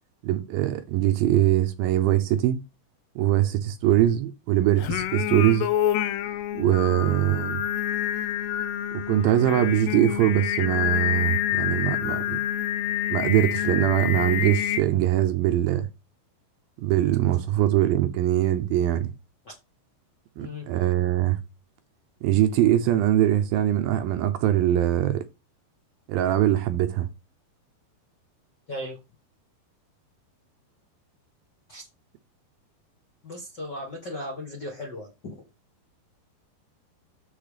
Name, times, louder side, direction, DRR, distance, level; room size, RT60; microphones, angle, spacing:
voice 1, 0.2-2.6 3.2-5.7 6.5-7.6 8.9-12.4 13.1-15.9 16.8-19.1 20.4-21.4 22.2-25.3 26.1-27.1, right 12 dB, 75° right, 2.4 m, -22 dB
Singing, 4.8-14.8, left 11 dB, 85° left, 2.9 m, -27 dB
voice 2, 28.7-29.0 31.7-31.9 33.2-35.3, left 1 dB, 45° left, 1.5 m, -36 dB
13.0 x 4.6 x 5.1 m
omnidirectional pair, 4.6 m